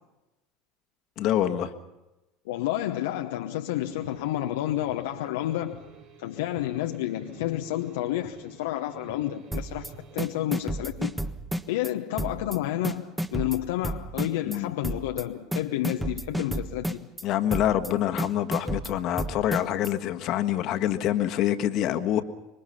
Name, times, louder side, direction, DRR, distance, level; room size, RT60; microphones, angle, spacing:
voice 1, 1.2-1.7 14.5-14.7 17.2-22.2, left 11 dB, 55° left, 1.5 m, -26 dB
voice 2, 2.4-5.8 6.2-11.2 11.7-17.1, left 14 dB, 70° left, 1.0 m, -30 dB
sound 1, 3.7-10.4, right 4 dB, 60° right, 5.5 m, -50 dB
sound 2, 9.5-9.9 10.2-11.9 12.2-12.6 12.8-14.6 14.8-15.2 15.5-17.2 17.5-17.9 18.2-19.9, right 1 dB, 5° right, 1.4 m, -31 dB
26.5 x 23.0 x 5.7 m
hypercardioid pair, 75°, 0 cm